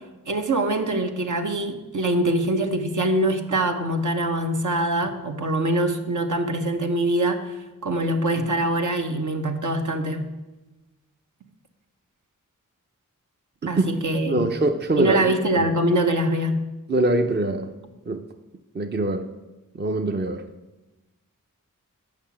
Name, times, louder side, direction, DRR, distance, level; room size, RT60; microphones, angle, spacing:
voice 1, 0.3-7.6 7.8-10.3 13.7-14.5 15.0-16.6, right 1 dB, 65° right, 1.0 m, -24 dB
voice 2, 14.3-15.7 16.9-17.7 18.1-18.2 18.7-19.3 19.7-20.4, right 2 dB, 30° right, 0.6 m, -23 dB
6.6 x 5.8 x 7.3 m
cardioid pair, 50°, 33 cm